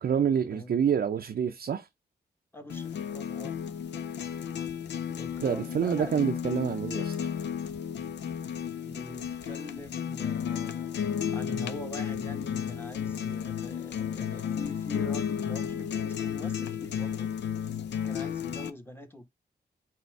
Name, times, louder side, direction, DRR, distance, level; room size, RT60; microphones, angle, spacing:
voice 1, 0.0-1.9 5.4-7.2, right 8 dB, 65° right, 0.5 m, -27 dB
voice 2, 0.5-0.9 2.5-3.5 5.2-6.4 8.8-10.9 11.3-17.4 18.0-19.3, left 1 dB, 15° left, 1.1 m, -44 dB
sound 1, 2.7-18.7, left 8 dB, 85° left, 0.5 m, -33 dB
4.2 x 2.5 x 4.6 m
cardioid pair, 55°, 17 cm